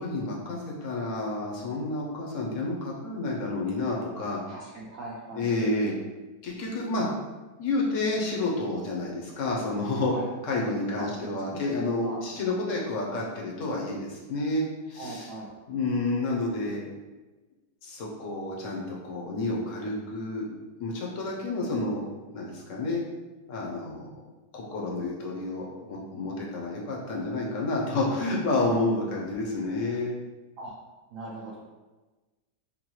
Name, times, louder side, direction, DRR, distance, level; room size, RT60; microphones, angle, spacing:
voice 1, 0.0-4.4 5.3-5.9 6.4-7.1 7.6-10.1 10.4-15.3 15.7-16.8 17.8-20.5 20.8-22.0 22.3-23.0 23.5-24.0 24.5-30.1, left 2 dB, 60° left, -3 dB, 0.9 m, -30 dB
voice 2, 4.5-5.5 10.1-10.2 11.0-11.6 12.0-12.2 15.0-15.5 30.6-30.7 31.1-31.6, right 2 dB, 65° right, -5 dB, 0.9 m, -39 dB
5.4 x 2.2 x 3.0 m, 1.2 s
omnidirectional pair, 1.9 m